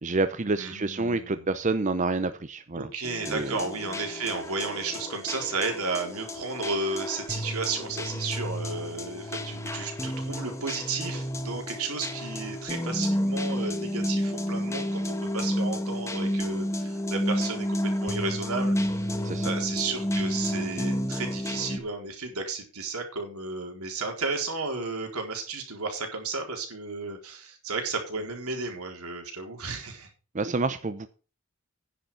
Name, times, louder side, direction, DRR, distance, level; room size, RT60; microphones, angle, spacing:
voice 1, 0.0-2.9 3.3-3.6 19.2-19.5 30.3-31.1, right 3 dB, 35° right, 11 dB, 0.6 m, -28 dB
voice 2, 0.6-1.5 2.8-30.1, right 4 dB, 90° right, 3 dB, 4.1 m, -33 dB
sound 1, 3.0-21.8, equal, 15° left, 1.2 m, -31 dB
10.0 x 7.9 x 5.6 m, 0.36 s
head